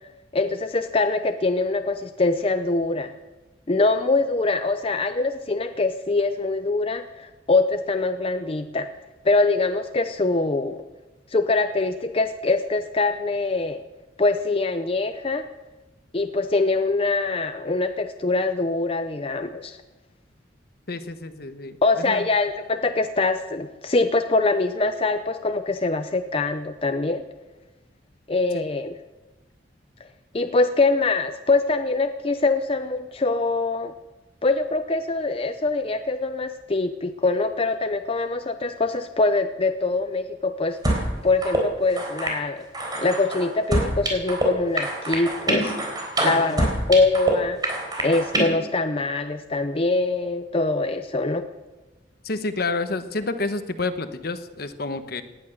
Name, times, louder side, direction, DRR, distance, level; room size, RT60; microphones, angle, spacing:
voice 1, 0.3-3.1 3.7-8.9 9.2-10.8 11.3-13.8 14.2-15.5 16.1-19.8 21.8-27.2 28.3-29.0 30.0-30.1 30.3-33.9 34.4-42.7 43.0-45.8 46.2-47.6 48.0-51.5, left 3 dB, 30° left, 7 dB, 0.6 m, -23 dB
voice 2, 20.9-22.3 28.5-28.6 46.2-46.6 52.2-55.2, left 3 dB, 55° left, 9 dB, 1.1 m, -29 dB
sound 1, 40.8-41.1 41.4-41.6 42.0-42.4 42.7-44.5 44.8-47.3 47.6-48.4, right 1 dB, 25° right, 3.9 m, -25 dB
18.5 x 11.0 x 6.6 m, 1.1 s
head